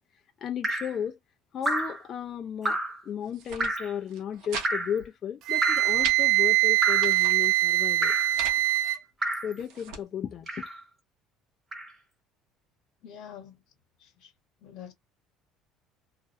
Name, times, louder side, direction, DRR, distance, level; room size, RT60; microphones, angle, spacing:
voice 1, 0.4-1.2 1.5-2.8 3.1-8.2 9.4-10.6, left 8 dB, 30° left, 0.3 m, -34 dB
Drip, 0.6-1.0 1.6-2.0 2.6-3.0 3.6-3.9 4.6-5.0 5.6-6.0 6.8-7.2 8.0-8.3 9.2-9.5 10.5-10.8 11.7-11.9, right 1 dB, 10° right, 0.7 m, -30 dB
sound 1, 3.2-3.7 4.1-4.7 5.0-5.1 5.5-6.2 6.7-7.4 8.0-8.6 9.3-10.0, right 5 dB, 60° right, 0.8 m, -39 dB
Wind instrument woodwind instrument, 5.5-9.0, right 17 dB, 45° right, 0.4 m, -23 dB
voice 2, 13.0-13.6 14.0-14.3 14.6-14.9, left 9 dB, 55° left, 0.9 m, -46 dB
2.4 x 2.1 x 2.5 m
cardioid pair, 175°, 0 cm